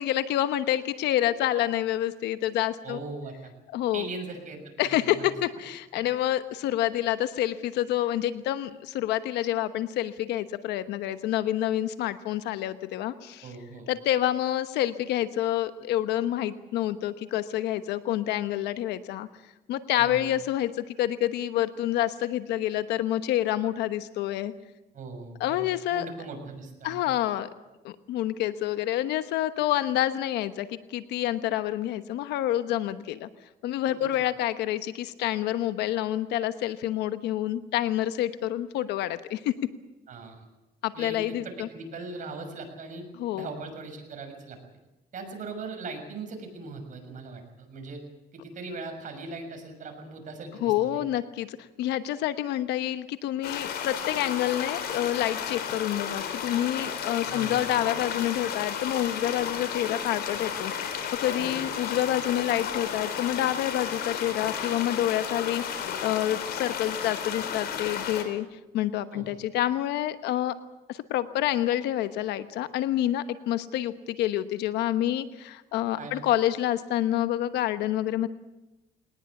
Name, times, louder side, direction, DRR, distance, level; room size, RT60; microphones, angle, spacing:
voice 1, 0.0-3.0 3.7-4.0 4.8-13.5 13.9-19.3 19.7-24.5 25.4-26.1 26.8-27.5 27.8-33.3 33.6-39.5 40.8-41.7 43.2-43.5 50.6-70.5 70.9-78.3, left 13 dB, 85° left, 11 dB, 1.1 m, -28 dB
voice 2, 2.8-3.5 3.9-5.3 13.4-13.9 20.0-20.3 24.9-27.1 40.1-40.5 40.9-43.0 43.3-44.6 45.1-48.0 48.3-51.0 57.2-57.6 61.4-61.6 69.1-69.3 76.0-76.2, right 3 dB, 50° right, 4 dB, 6.6 m, -40 dB
sound 1, 53.4-68.2, left 7 dB, 70° left, 4.0 m, -33 dB
21.0 x 19.5 x 8.4 m, 1.0 s
cardioid pair, 110°, 17 cm